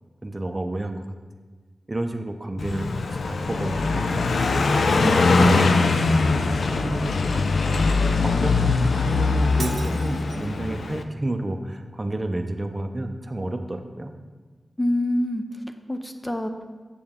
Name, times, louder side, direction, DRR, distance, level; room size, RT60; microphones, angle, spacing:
voice 1, 0.2-1.0 1.9-2.9 3.3-4.3 5.1-5.6 6.4-7.2 7.6-7.8 8.2-14.1, right 1 dB, 30° right, 6 dB, 0.6 m, -30 dB
Car passing by, 2.6-11.0, left 3 dB, 85° left, 0.4 m, -22 dB
voice 2, 4.9-5.5 14.8-15.4 15.9-16.7, left 1 dB, 15° left, 6 dB, 0.6 m, -26 dB
Shatter, 9.6-10.6, right 5 dB, 85° right, 0.3 m, -38 dB
7.0 x 6.8 x 3.6 m, 1.4 s
cardioid pair, 45°, 0 cm